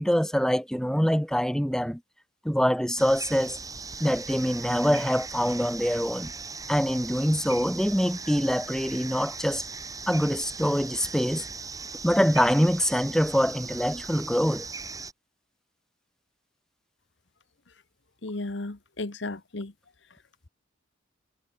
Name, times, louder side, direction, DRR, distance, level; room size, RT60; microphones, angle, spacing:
voice 1, 0.0-2.0 2.4-3.6 4.0-6.3 6.7-9.6 10.1-11.5 12.0-14.7, equal, 5° left, 2.8 m, -24 dB
sound 1, 3.0-15.1, right 4 dB, 20° right, 2.5 m, -39 dB
voice 2, 18.2-19.7, left 2 dB, 70° left, 1.3 m, -34 dB
head